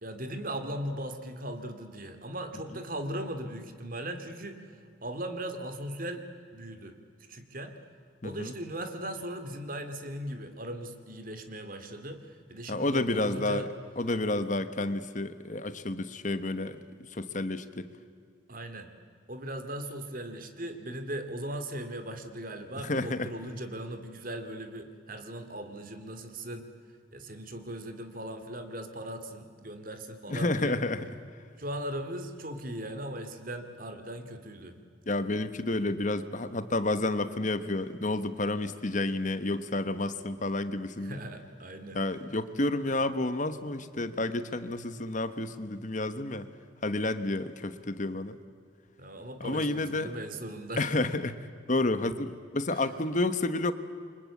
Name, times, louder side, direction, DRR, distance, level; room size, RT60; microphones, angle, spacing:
voice 1, 0.0-4.6 5.0-6.3 6.5-7.0 7.3-7.8 8.2-13.7 18.5-18.9 19.3-26.7 27.1-30.8 31.6-34.7 41.0-42.0 49.0-50.9 52.7-52.8, right 1 dB, 45° right, 8 dB, 2.3 m, -38 dB
voice 2, 8.2-8.5 12.7-13.7 14.0-16.8 17.1-17.9 22.8-23.3 30.3-31.1 35.1-41.2 41.9-46.5 46.8-48.4 49.4-50.1 50.8-51.4 51.7-53.7, left 2 dB, 40° left, 11 dB, 1.1 m, -30 dB
28.5 x 24.5 x 8.4 m, 2.2 s
head